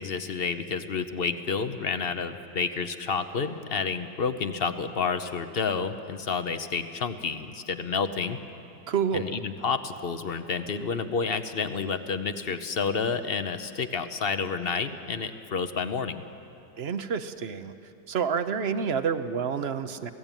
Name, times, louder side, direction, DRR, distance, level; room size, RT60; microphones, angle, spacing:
voice 1, 0.0-8.4 9.1-16.2, left 5 dB, 45° left, 9 dB, 0.8 m, -30 dB
voice 2, 8.9-9.4 16.8-17.7 18.1-20.1, right 6 dB, 55° right, 10 dB, 0.7 m, -28 dB
27.0 x 17.5 x 9.1 m, 2.7 s
omnidirectional pair, 2.0 m